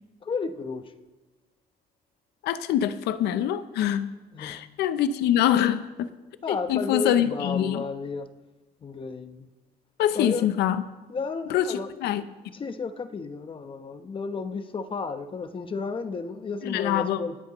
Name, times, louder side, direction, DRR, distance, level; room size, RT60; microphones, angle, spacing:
voice 1, 0.2-0.9 4.3-4.6 6.4-8.3 8.8-9.5 10.1-10.5 11.1-11.9 12.5-17.4, left 4 dB, 30° left, 9 dB, 0.9 m, -32 dB
voice 2, 2.4-4.1 4.4-6.1 6.5-7.8 10.0-10.8 11.5-12.2 16.6-17.2, left 10 dB, 80° left, 12 dB, 0.7 m, -25 dB
27.5 x 10.5 x 3.1 m, 1.2 s
cardioid pair, 110°, 17 cm